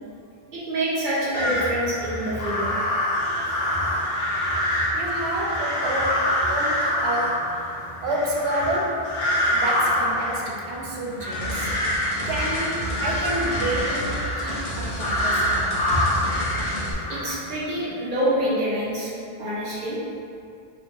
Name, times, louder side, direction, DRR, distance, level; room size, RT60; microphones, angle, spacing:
voice 1, 0.5-2.7 17.1-19.1 19.4-20.0, right 1 dB, 55° right, -8 dB, 1.0 m, -26 dB
sound 1, 1.3-17.6, left 1 dB, 75° left, 0.8 m, -26 dB
voice 2, 4.9-7.6 8.0-9.2 9.5-11.8 12.3-15.9, right 1 dB, 85° right, -1 dB, 0.8 m, -29 dB
sound 2, 11.3-16.9, equal, 45° left, 0.5 m, -32 dB
2.7 x 2.6 x 3.6 m, 2.5 s
omnidirectional pair, 1.0 m